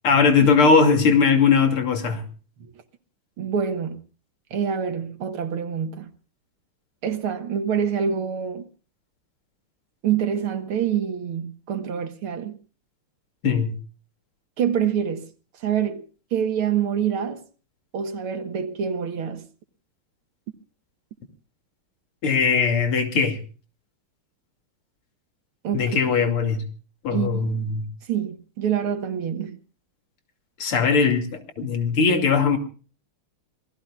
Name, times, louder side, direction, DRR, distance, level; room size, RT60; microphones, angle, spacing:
voice 1, 0.0-2.2 13.4-13.8 22.2-23.4 25.7-26.6 27.0-27.9 30.6-32.6, left 5 dB, 85° left, 3.5 m, -20 dB
voice 2, 3.4-4.0 4.5-6.1 7.0-8.7 10.0-12.6 14.6-15.3 15.6-16.0 16.3-17.4 17.9-19.5 25.6-26.0 27.1-27.5 28.1-29.6, right 8 dB, 80° right, 2.2 m, -26 dB
27.5 x 19.0 x 2.4 m
omnidirectional pair, 2.3 m